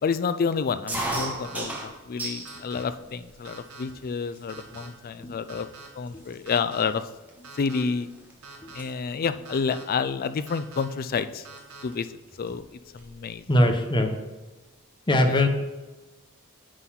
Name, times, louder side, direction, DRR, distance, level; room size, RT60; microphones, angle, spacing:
voice 1, 0.0-5.7 6.0-7.0 7.6-8.1 8.7-11.5 11.8-12.1 12.4-12.7 12.9-13.4 15.3-15.5, left 5 dB, 45° left, 13 dB, 0.4 m, -29 dB
sound 1, 0.9-2.6 3.0-3.7 4.4-4.5 4.7-5.1 5.7-5.8 6.1-8.3 8.6-8.9 10.2-10.5 11.6-11.7 11.9-12.0 12.3-13.2, right 1 dB, 10° right, 1.3 m, -35 dB
sound 2, 1.4-1.8 2.5-2.8 3.5-3.8 4.5-4.9 5.5-5.9 6.5-6.8 7.4-7.8 8.4-8.8 9.5-9.8 10.5-10.9 11.5-11.8, right 4 dB, 80° right, 1.2 m, -44 dB
voice 2, 13.5-14.1 15.1-15.5, left 1 dB, 20° left, 5 dB, 0.8 m, -22 dB
9.8 x 4.1 x 5.7 m, 1.2 s
head